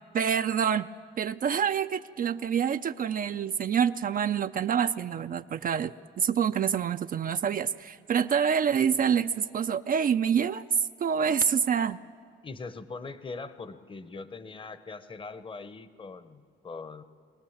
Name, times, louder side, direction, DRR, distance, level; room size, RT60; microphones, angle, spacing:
voice 1, 0.1-0.9 1.2-12.0, right 7 dB, 45° right, 10 dB, 0.5 m, -27 dB
voice 2, 12.4-17.0, left 4 dB, 25° left, 13 dB, 0.9 m, -41 dB
24.0 x 18.0 x 7.2 m, 2.2 s
cardioid pair, 90°, 20 cm